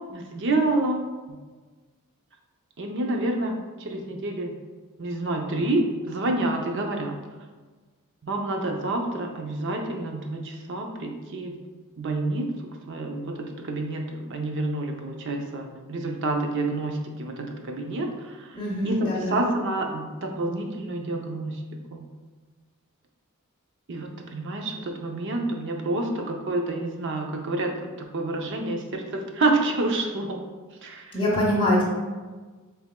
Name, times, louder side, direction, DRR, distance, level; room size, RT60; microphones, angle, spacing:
voice 1, 0.1-1.0 2.8-4.5 5.0-7.2 8.2-11.6 12.0-12.5 12.9-18.5 18.8-21.6 21.9-22.0 23.9-30.4 30.8-31.2, right 2 dB, 55° right, 3 dB, 0.6 m, -28 dB
voice 2, 18.6-19.5 31.1-31.8, left 1 dB, 25° left, -6 dB, 0.8 m, -24 dB
7.1 x 3.4 x 2.2 m, 1.3 s
head